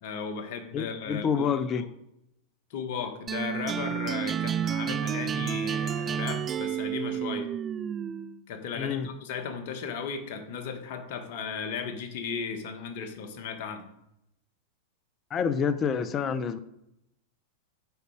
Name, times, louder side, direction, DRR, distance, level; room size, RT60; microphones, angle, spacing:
voice 1, 0.0-1.9 2.7-7.5 8.5-13.9, left 6 dB, 60° left, 7 dB, 1.4 m, -36 dB
voice 2, 0.7-1.9 8.8-9.1 15.3-16.6, left 6 dB, 30° left, 12 dB, 0.7 m, -28 dB
sound 1, 3.3-8.4, right 8 dB, 30° right, 0.4 m, -30 dB
8.0 x 5.4 x 4.9 m, 0.80 s
hypercardioid pair, 95°, 0 cm